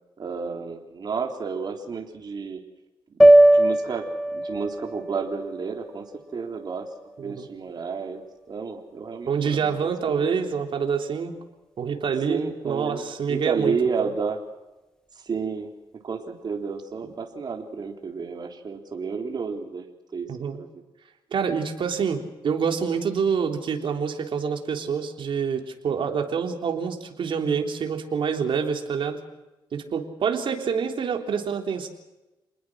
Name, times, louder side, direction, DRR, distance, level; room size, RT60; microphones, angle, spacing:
voice 1, 0.2-2.6 3.5-4.0 4.3-6.1 6.3-6.9 7.2-8.2 8.5-10.3 12.3-14.4 15.1-15.7 16.0-19.9 20.1-20.7, right 5 dB, 50° right, 2 dB, 3.7 m, -31 dB
sound 1, 3.2-7.5, right 1 dB, 5° left, 2.0 m, -20 dB
voice 2, 9.3-11.4 11.8-14.1 20.3-20.6 21.3-29.2 29.7-31.9, right 6 dB, 65° right, 3 dB, 3.5 m, -27 dB
28.5 x 20.5 x 6.4 m, 1.0 s
cardioid pair, 95°, 9 cm